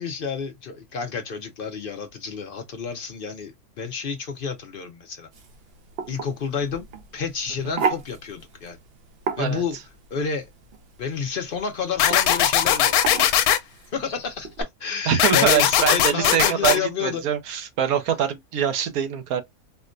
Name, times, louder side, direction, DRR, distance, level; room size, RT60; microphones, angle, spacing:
voice 1, 0.0-3.5 3.8-5.3 6.1-6.9 7.1-8.8 9.4-9.8 10.1-10.5 11.0-13.5 13.9-17.2, left 6 dB, 60° left, 0.6 m, -30 dB
sound 1, 5.3-14.6, right 6 dB, 55° right, 0.7 m, -34 dB
sound 2, 12.0-13.6 15.2-16.8, left 10 dB, 80° left, 1.0 m, -19 dB
voice 2, 15.1-19.4, right 9 dB, 70° right, 1.2 m, -24 dB
4.3 x 2.1 x 2.5 m
omnidirectional pair, 1.6 m